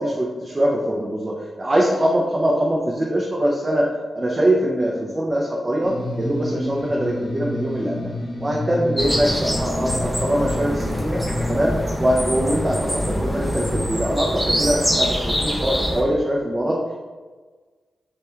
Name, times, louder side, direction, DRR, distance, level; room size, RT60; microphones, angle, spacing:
voice 1, 0.0-8.1 8.4-11.2 11.5-16.8, right 1 dB, 35° right, -3 dB, 0.4 m, -22 dB
sound 1, 5.8-13.9, left 1 dB, 80° left, 0.6 m, -30 dB
sound 2, 9.0-16.0, equal, 5° right, 0.7 m, -25 dB
2.2 x 2.2 x 3.0 m, 1.4 s
supercardioid pair, 45°, 0 cm